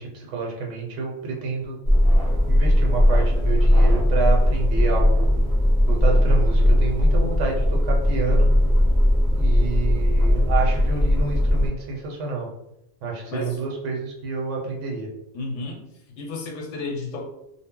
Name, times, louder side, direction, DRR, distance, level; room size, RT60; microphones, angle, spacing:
voice 1, 0.0-1.8 2.5-5.3 5.9-8.5 9.3-12.5 13.0-15.1, right 4 dB, 85° right, -1 dB, 0.9 m, -29 dB
sound 1, 1.8-11.7, left 1 dB, 5° left, 0.7 m, -18 dB
voice 2, 15.3-15.8 16.2-17.2, left 3 dB, 85° left, 1 dB, 1.0 m, -32 dB
2.0 x 2.0 x 3.6 m, 0.85 s
omnidirectional pair, 1.2 m